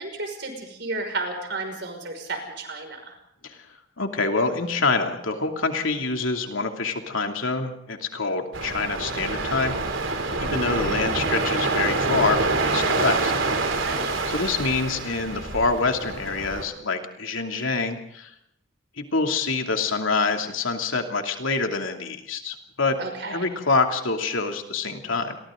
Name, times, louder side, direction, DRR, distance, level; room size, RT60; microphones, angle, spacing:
voice 1, 0.0-3.1 10.4-10.6 13.7-14.1 23.0-23.4, right 3 dB, 60° right, 4 dB, 5.7 m, -33 dB
voice 2, 4.0-13.3 14.3-18.3 19.0-23.0 23.3-25.4, left 3 dB, 80° left, 4 dB, 2.8 m, -26 dB
sound 1, 8.5-16.6, right 3 dB, 75° right, 3.3 m, -26 dB
29.0 x 23.0 x 3.9 m, 0.74 s
head